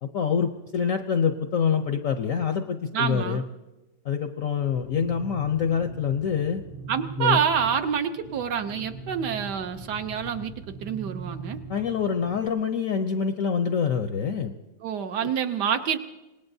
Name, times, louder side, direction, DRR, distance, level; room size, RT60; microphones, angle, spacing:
voice 1, 0.0-3.4 4.0-6.6 7.2-7.4 11.7-14.5 15.2-15.3, left 7 dB, 65° left, 6 dB, 0.8 m, -26 dB
voice 2, 2.9-3.4 6.9-11.6 14.8-16.0, right 7 dB, 70° right, 7 dB, 1.2 m, -27 dB
sound 1, 4.5-12.5, right 3 dB, 40° right, 1.0 m, -41 dB
26.0 x 19.0 x 2.7 m, 1.1 s
omnidirectional pair, 2.0 m